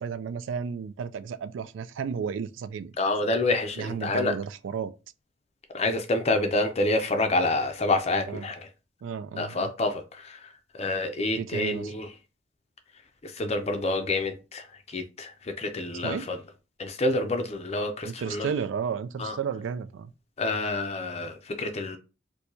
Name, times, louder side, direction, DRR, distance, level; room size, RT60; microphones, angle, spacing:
voice 1, 0.0-2.9 3.8-4.9 8.3-8.5 9.0-9.7 11.4-11.9 16.0-16.3 18.0-20.1, right 6 dB, 75° right, 0.3 m, -33 dB
voice 2, 3.0-4.3 5.7-8.6 9.4-10.4 10.7-12.1 13.2-15.3 15.6-16.4 16.8-18.5 19.2-19.3 20.4-22.0, left 2 dB, 35° left, 0.4 m, -28 dB
4.5 x 2.2 x 2.7 m
head